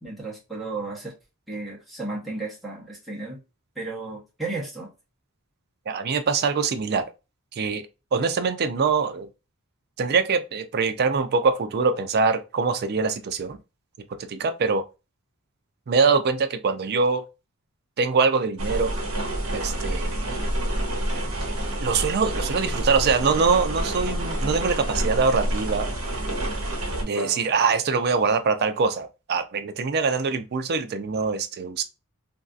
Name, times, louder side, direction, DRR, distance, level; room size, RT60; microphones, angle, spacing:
voice 1, 0.0-1.1 1.5-3.4 3.7-4.9, right 3 dB, ahead, 1.0 m, -34 dB
voice 2, 5.9-7.1 7.5-7.8 8.1-9.3 10.0-13.6 14.2-14.8 15.9-17.2 18.0-18.9 19.5-20.2 21.8-25.9 27.0-31.8, right 5 dB, 45° right, 0.4 m, -23 dB
sound 1, 18.6-27.0, right 1 dB, 70° right, 1.0 m, -28 dB
sound 2, 22.1-28.6, left 1 dB, 85° left, 1.0 m, -42 dB
3.2 x 2.5 x 2.4 m
head